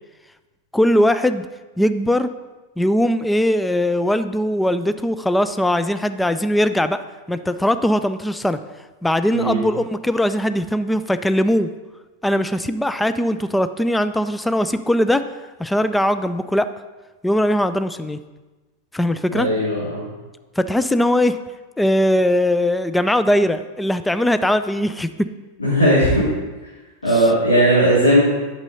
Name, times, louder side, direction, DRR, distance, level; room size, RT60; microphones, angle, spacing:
voice 1, 0.7-1.5 1.8-2.3 2.8-7.0 7.3-8.6 9.0-11.7 12.2-15.2 15.6-16.7 17.2-18.2 18.9-19.5 20.6-21.4 21.8-25.3, left 1 dB, 5° left, 11 dB, 0.3 m, -20 dB
voice 2, 19.3-20.0 25.6-26.3 27.0-28.2, right 1 dB, 75° left, -10 dB, 2.8 m, -17 dB
8.8 x 6.6 x 4.1 m, 1.2 s
figure-of-eight pair, 90°, 0 cm